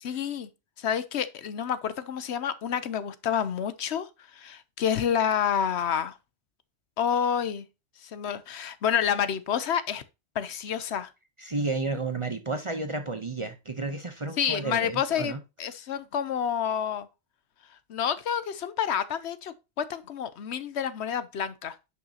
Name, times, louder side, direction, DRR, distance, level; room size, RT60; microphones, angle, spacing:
voice 1, 0.0-0.5 0.8-4.1 4.3-6.1 7.0-7.7 8.0-10.0 10.3-11.1 14.4-17.1 17.9-21.7, left 8 dB, 70° left, 0.9 m, -29 dB
voice 2, 11.4-15.4, right 3 dB, 30° right, 0.7 m, -32 dB
10.0 x 5.6 x 2.7 m
omnidirectional pair, 1.2 m